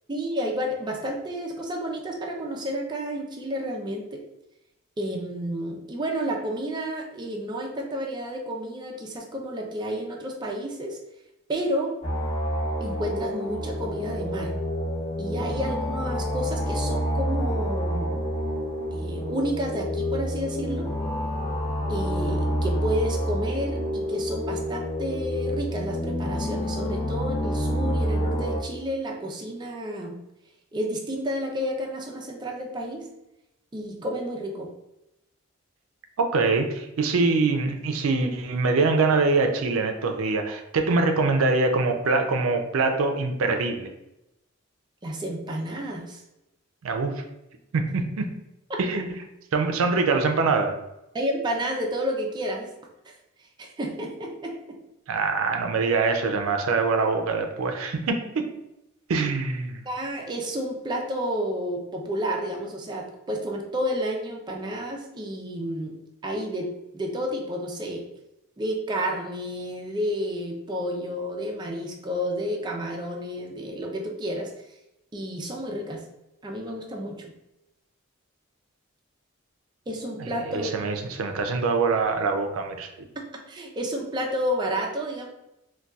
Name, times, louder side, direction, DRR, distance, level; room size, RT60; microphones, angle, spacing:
voice 1, 0.1-4.2 5.0-11.0 11.5-12.0 12.8-14.5 15.2-18.3 18.9-20.9 21.9-30.1 30.7-33.1 33.7-34.7 45.0-46.2 48.7-48.8 51.1-52.7 53.1-53.2 53.4-54.8 59.9-68.0 68.6-74.7 75.1-76.0 76.4-77.3 79.9-80.7 83.2-85.3, equal, 20° right, 0 dB, 0.4 m, -31 dB
sound 1, 12.0-28.6, equal, 30° left, 0.8 m, -28 dB
voice 2, 36.2-43.9 46.8-47.2 47.7-48.3 48.8-49.1 49.5-50.8 55.1-58.2 59.1-59.8 80.5-83.0, right 3 dB, 85° right, 5 dB, 0.4 m, -24 dB
3.9 x 2.2 x 2.3 m, 0.91 s
head